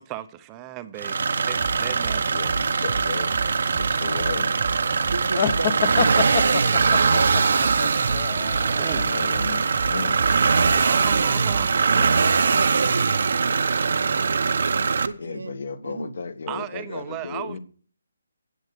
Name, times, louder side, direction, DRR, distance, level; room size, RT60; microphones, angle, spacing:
voice 1, 0.0-2.3 8.8-9.1 10.7-12.1 16.5-17.6, right 13 dB, 15° right, 0.6 m, -36 dB
sound 1, 1.0-15.1, right 5 dB, 55° right, 0.8 m, -22 dB
sound 2, 1.5-11.8, right 5 dB, 30° right, 1.0 m, -34 dB
voice 2, 2.3-3.3 3.8-4.5 8.8-10.3 15.2-17.6, left 4 dB, 55° left, 1.4 m, -34 dB
voice 3, 5.1-7.5 10.9-11.3 12.2-13.6 14.4-16.1, right 3 dB, 80° right, 1.1 m, -33 dB
sound 3, 5.3-9.0, left 9 dB, 25° left, 0.8 m, -27 dB
11.0 x 8.0 x 6.6 m
hypercardioid pair, 170°, 0 cm